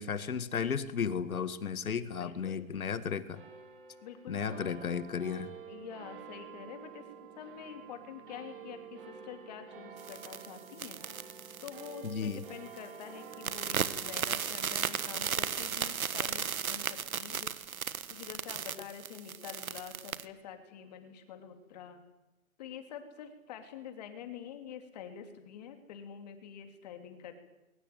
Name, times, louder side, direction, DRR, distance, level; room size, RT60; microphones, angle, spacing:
voice 1, 0.0-3.4 4.3-5.5 12.0-12.4 17.4-17.5, left 6 dB, 90° left, 13 dB, 2.0 m, -34 dB
voice 2, 2.0-2.9 4.0-4.8 5.7-7.1 7.3-11.0 11.6-17.4 18.1-22.0 22.6-27.4, left 8 dB, 30° left, 7 dB, 3.0 m, -47 dB
sound 1, 3.3-20.0, right 7 dB, 40° right, 3.5 m, -51 dB
sound 2, 10.0-12.5 12.8-13.0 13.3-20.2, right 7 dB, 90° right, 1.5 m, -35 dB
21.5 x 19.0 x 9.2 m, 0.99 s
hypercardioid pair, 170°, 41 cm